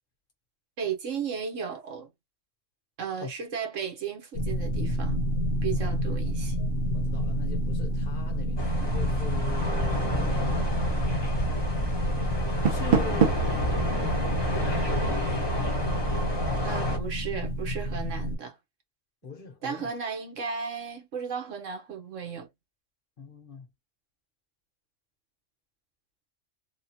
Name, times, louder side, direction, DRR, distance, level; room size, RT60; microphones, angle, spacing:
voice 1, 0.8-2.1 3.0-5.2 5.6-6.6 16.6-18.6 19.6-22.5, right 6 dB, 80° right, 1.5 m, -34 dB
sound 1, 4.3-18.4, equal, 70° left, 1.1 m, -29 dB
voice 2, 6.5-10.7 12.7-13.5 14.0-15.5 19.2-19.9 23.2-23.7, left 4 dB, 50° left, 1.0 m, -41 dB
sound 2, 8.6-17.0, equal, 20° left, 1.0 m, -30 dB
Door, 12.4-13.6, right 7 dB, 55° right, 0.8 m, -25 dB
3.6 x 2.4 x 2.8 m
omnidirectional pair, 1.3 m